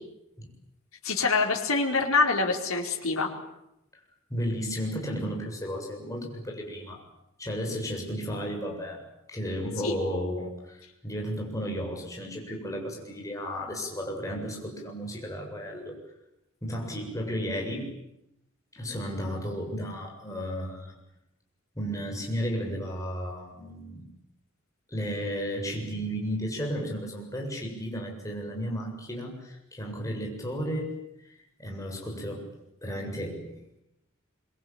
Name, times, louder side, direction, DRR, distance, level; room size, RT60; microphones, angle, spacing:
voice 1, 1.0-3.3 9.8-9.9, left 4 dB, 80° left, 2 dB, 4.8 m, -25 dB
voice 2, 4.3-7.0 7.4-16.0 16.6-17.9 18.7-21.0 21.8-24.1 24.9-30.9 31.6-32.5 32.8-33.6, equal, 15° left, 0 dB, 7.5 m, -33 dB
25.0 x 24.5 x 9.1 m, 0.85 s
head